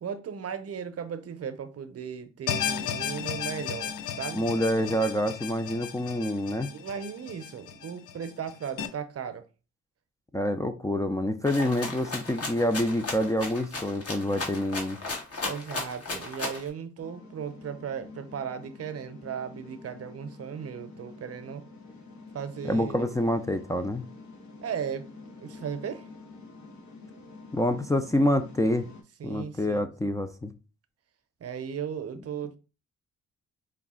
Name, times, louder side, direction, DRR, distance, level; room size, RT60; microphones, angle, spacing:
voice 1, 0.0-4.7 6.7-9.5 15.4-21.6 22.3-23.2 24.6-25.1 25.4-26.1 29.2-30.1 31.4-32.6, right 7 dB, 55° right, 0.7 m, -36 dB
sound 1, 2.5-8.9, left 8 dB, 90° left, 0.6 m, -34 dB
voice 2, 4.3-6.7 10.3-15.0 22.6-24.0 27.5-28.9 29.2-30.5, left 1 dB, 10° left, 0.4 m, -27 dB
Rattle (instrument), 11.4-16.7, left 3 dB, 50° left, 1.7 m, -35 dB
sound 2, 17.0-29.0, left 3 dB, 70° left, 1.2 m, -48 dB
4.8 x 2.3 x 3.6 m
cardioid pair, 70°, 29 cm